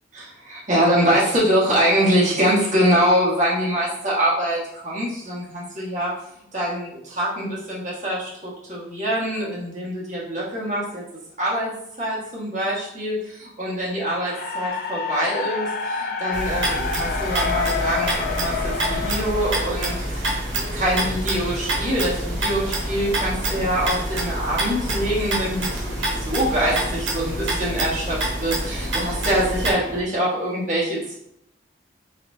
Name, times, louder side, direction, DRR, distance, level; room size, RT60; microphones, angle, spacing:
voice 1, 0.1-6.1 6.5-11.0 11.4-31.1, equal, 40° right, -6 dB, 1.4 m, -24 dB
sound 1, 14.2-20.4, left 5 dB, 50° left, 0.4 m, -28 dB
sound 2, 16.3-29.7, right 1 dB, 90° right, 0.9 m, -27 dB
sound 3, 16.5-30.0, left 1 dB, 35° left, 0.9 m, -35 dB
4.1 x 3.3 x 2.7 m, 0.74 s
head